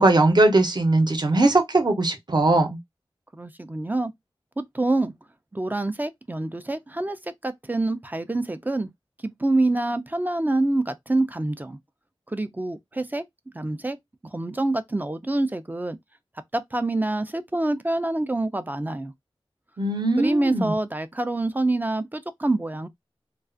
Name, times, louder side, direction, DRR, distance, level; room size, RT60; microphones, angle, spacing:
voice 1, 0.0-2.8 19.8-20.7, right 2 dB, 50° right, 0.7 m, -20 dB
voice 2, 3.3-4.1 4.6-5.1 5.5-8.9 9.2-11.8 12.3-13.2 13.5-14.0 14.3-16.0 16.5-19.1 20.2-22.9, right 2 dB, 20° right, 0.3 m, -26 dB
2.4 x 2.3 x 2.4 m
wide cardioid pair, 65°, 10 cm